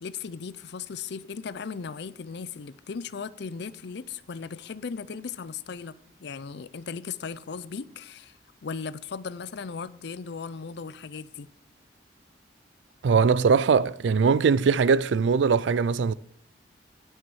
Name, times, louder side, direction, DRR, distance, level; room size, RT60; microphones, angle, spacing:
voice 1, 0.0-5.9 6.2-11.5, left 5 dB, 65° left, 0.5 m, -37 dB
voice 2, 13.0-16.1, right 5 dB, 80° right, 0.4 m, -21 dB
10.5 x 6.3 x 6.2 m
head